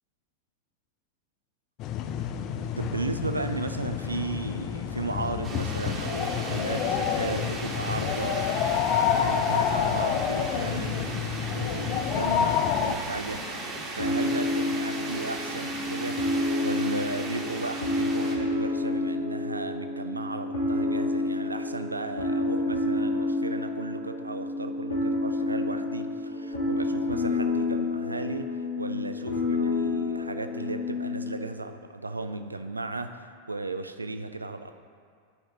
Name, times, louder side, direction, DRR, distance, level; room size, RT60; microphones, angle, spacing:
sound 1, 1.8-12.9, left 8 dB, 40° left, 0.3 m, -28 dB
voice 1, 2.6-8.8 9.2-34.7, right 2 dB, 80° right, 8 dB, 0.4 m, -35 dB
sound 2, 5.4-18.3, right 2 dB, 25° right, 1.4 m, -37 dB
sound 3, 14.0-31.4, left 2 dB, 65° left, 1.9 m, -29 dB
11.5 x 4.9 x 3.0 m, 2.1 s
figure-of-eight pair, 90°, 0 cm